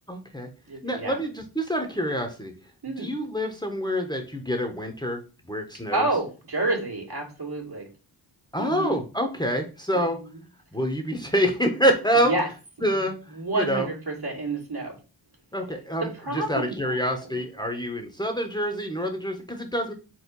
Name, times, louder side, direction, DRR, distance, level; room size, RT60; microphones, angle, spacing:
voice 1, 0.1-0.5 0.8-2.5 3.0-5.2 5.5-6.0 8.5-10.2 10.7-12.3 12.8-13.2 13.5-13.9 15.5-19.9, equal, 10° left, 3 dB, 1.2 m, -26 dB
voice 2, 0.7-1.2 2.8-3.1 5.9-7.9 8.6-9.0 9.9-10.4 12.2-12.5 12.8-14.9 16.1-17.1, right 2 dB, 60° right, -1 dB, 2.5 m, -30 dB
4.7 x 3.8 x 5.3 m, 0.33 s
wide cardioid pair, 75°, 43 cm